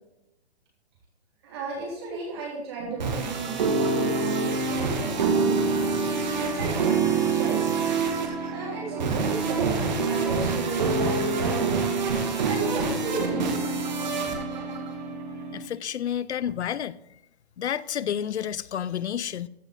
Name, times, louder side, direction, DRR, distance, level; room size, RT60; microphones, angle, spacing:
voice 1, 1.4-5.9 6.5-7.0 7.3-7.6 8.5-11.7 12.4-13.5 14.2-14.3, right 4 dB, 25° right, -3 dB, 3.7 m, -34 dB
sound 1, 2.8-15.6, right 4 dB, 45° right, 2.0 m, -26 dB
voice 2, 15.5-17.0 17.6-19.5, left 9 dB, 85° left, 19 dB, 0.6 m, -30 dB
14.5 x 7.1 x 3.8 m, 0.88 s
hypercardioid pair, 180°, 33 cm